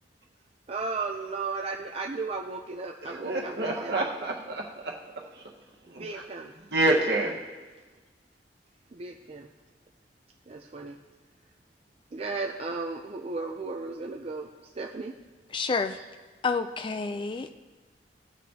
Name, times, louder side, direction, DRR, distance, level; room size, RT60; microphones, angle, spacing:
voice 1, 0.7-4.1 6.0-6.5 6.9-7.0 8.9-9.5 10.5-11.0 12.1-14.5 14.8-15.1 15.9-16.0, right 3 dB, 35° right, 1 dB, 0.4 m, -35 dB
voice 2, 3.0-5.5 5.9-6.2 6.6-7.4, right 2 dB, 70° right, -1 dB, 1.4 m, -28 dB
voice 3, 15.5-16.0 16.4-17.6, left 4 dB, 30° left, 9 dB, 0.3 m, -29 dB
18.0 x 6.2 x 2.8 m, 1.3 s
head